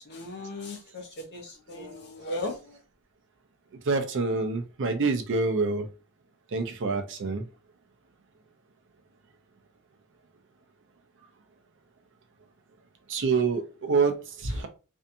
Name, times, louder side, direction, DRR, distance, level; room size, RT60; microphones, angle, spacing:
voice 1, 0.1-2.6 14.5-14.6, left 1 dB, 50° left, 0.7 m, -36 dB
voice 2, 3.9-5.8 6.5-7.4 13.1-13.6 13.9-14.2, right 4 dB, 55° right, 0.5 m, -26 dB
2.6 x 2.3 x 2.6 m
head